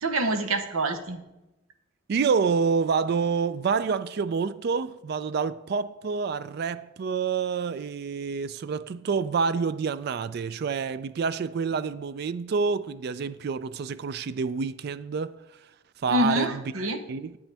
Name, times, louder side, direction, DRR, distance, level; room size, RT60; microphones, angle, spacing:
voice 1, 0.0-1.2 16.1-17.0, right 1 dB, 85° right, 0.9 m, -26 dB
voice 2, 2.1-15.4 16.0-16.6 17.1-17.4, right 5 dB, 50° right, 0.3 m, -27 dB
8.8 x 8.6 x 3.4 m
head